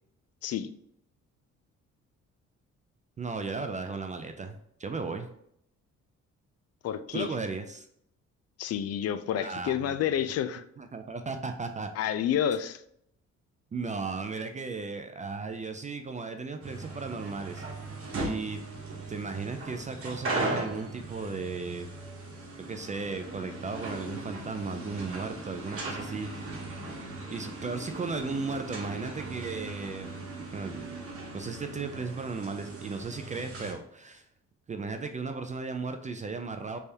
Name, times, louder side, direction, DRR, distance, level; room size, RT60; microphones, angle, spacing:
voice 1, 3.2-5.3 7.1-7.9 9.3-9.9 10.8-11.9 13.7-17.6 18.2-18.6 19.1-21.9 22.6-26.3 27.3-30.2 30.5-30.9 31.3-34.2 34.7-36.8, right 4 dB, 25° right, 6 dB, 0.4 m, -35 dB
voice 2, 6.8-7.3 8.6-10.6 12.0-12.8, left 9 dB, 55° left, 12 dB, 0.4 m, -29 dB
sound 1, 16.6-33.7, right 2 dB, 45° right, 1.2 m, -38 dB
3.4 x 3.3 x 2.8 m, 0.71 s
cardioid pair, 90°, 30 cm